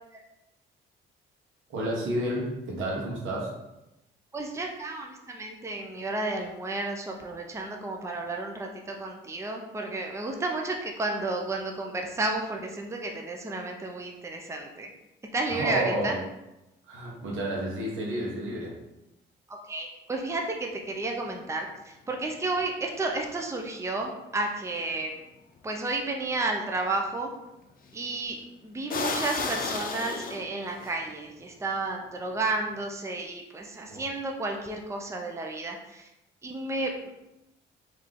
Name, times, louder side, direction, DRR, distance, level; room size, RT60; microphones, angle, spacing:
voice 1, 1.7-3.5 15.5-16.2 16.9-18.8 33.9-34.1, right 1 dB, 85° right, -3 dB, 1.4 m, -31 dB
voice 2, 4.3-14.9 15.3-16.2 19.5-25.1 25.6-27.3 27.9-28.4 28.6-36.1 36.4-37.1, right 2 dB, 15° right, 2 dB, 0.6 m, -32 dB
sound 1, 25.6-25.7 27.9-28.1 28.9-30.9, left 4 dB, 45° left, 0.6 m, -32 dB
3.7 x 3.2 x 3.5 m, 0.92 s
cardioid pair, 90°, 20 cm